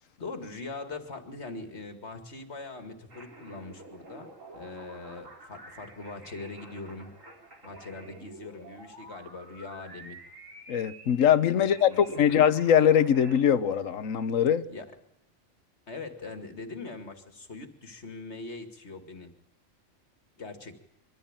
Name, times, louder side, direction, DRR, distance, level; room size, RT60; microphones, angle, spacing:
voice 1, 0.2-4.3 4.5-7.1 7.6-10.2 11.5-12.3 14.7-14.9 15.9-19.3 20.4-20.8, left 3 dB, 55° left, 2.5 m, -41 dB
sound 1, 3.1-13.4, right 2 dB, 75° right, 4.4 m, -49 dB
voice 2, 10.7-14.6, left 9 dB, 75° left, 1.3 m, -22 dB
23.5 x 14.5 x 8.9 m
omnidirectional pair, 1.4 m